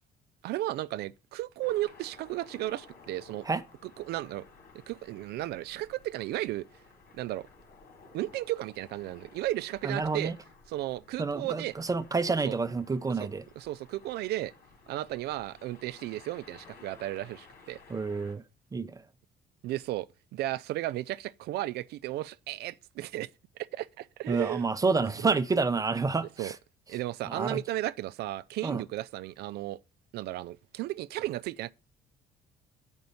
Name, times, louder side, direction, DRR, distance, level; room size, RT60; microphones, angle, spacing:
voice 1, 0.4-3.5 3.8-4.4 4.9-6.7 7.1-7.5 8.1-10.3 10.7-11.7 12.4-12.5 13.1-13.3 13.6-14.5 14.9-17.8 19.6-20.1 20.3-23.3 23.6-24.7 25.2-25.4 26.4-26.5 26.9-29.8 30.1-31.7, right 15 dB, 75° right, 0.4 m, -34 dB
sound 1, 1.6-18.4, left 4 dB, 65° left, 3.2 m, -55 dB
voice 2, 9.8-10.3 11.2-13.4 17.9-18.4 18.7-18.9 24.3-26.5 27.3-27.6 28.6-28.8, right 4 dB, 20° right, 0.6 m, -29 dB
7.7 x 5.3 x 6.9 m
cardioid pair, 110°, 17 cm